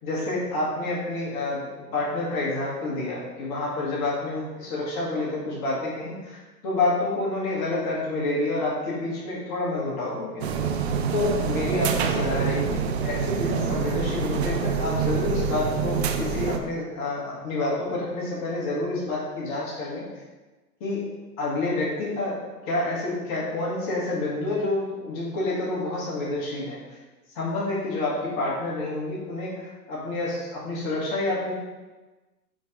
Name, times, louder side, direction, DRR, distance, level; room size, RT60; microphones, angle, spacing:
voice 1, 0.0-10.5 11.1-20.0 20.8-21.0 21.4-26.8 27.3-31.5, left 2 dB, 30° left, -6 dB, 1.8 m, -28 dB
sound 1, 10.4-16.6, right 6 dB, 40° right, 0.5 m, -26 dB
6.1 x 3.3 x 5.0 m, 1.2 s
hypercardioid pair, 130°, 50 cm